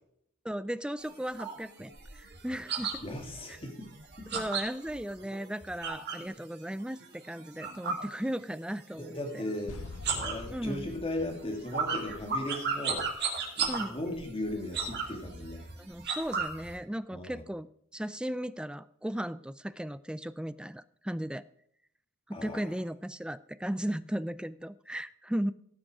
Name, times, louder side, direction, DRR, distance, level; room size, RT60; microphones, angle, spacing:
voice 1, 0.4-2.9 3.5-3.6 4.3-9.4 10.5-10.9 13.7-14.0 15.8-17.7 17.9-21.5 22.3-25.5, equal, 5° right, 15 dB, 0.4 m, -36 dB
sound 1, 1.0-6.3 6.7-8.8 9.1-9.6 9.9-16.7, right 5 dB, 50° right, 2.9 m, -35 dB
voice 2, 3.0-3.9 4.2-4.4 9.0-9.8 10.1-13.1 13.6-15.7 17.1-17.4 22.3-22.6, left 1 dB, 25° left, 2 dB, 2.4 m, -37 dB
sound 2, 9.7-12.6, left 2 dB, 90° left, 0.9 m, -45 dB
17.0 x 6.4 x 4.9 m, 0.71 s
head